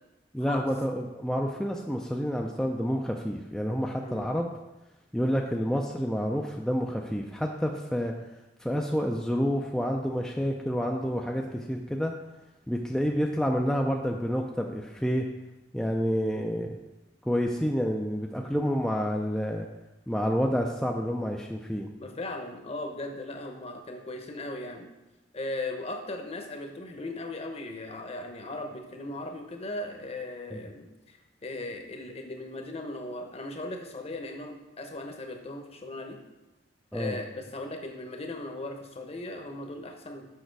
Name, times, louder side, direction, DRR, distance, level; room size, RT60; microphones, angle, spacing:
voice 1, 0.3-4.5 5.1-8.1 8.6-12.1 12.7-15.3 15.7-16.8 17.2-19.7 20.1-21.9 30.5-30.6 36.9-37.2, equal, 5° left, 0 dB, 0.4 m, -29 dB
voice 2, 22.0-24.9 25.3-36.2 36.9-40.3, left 2 dB, 35° left, 4 dB, 0.9 m, -38 dB
6.6 x 5.7 x 4.6 m, 1.0 s
head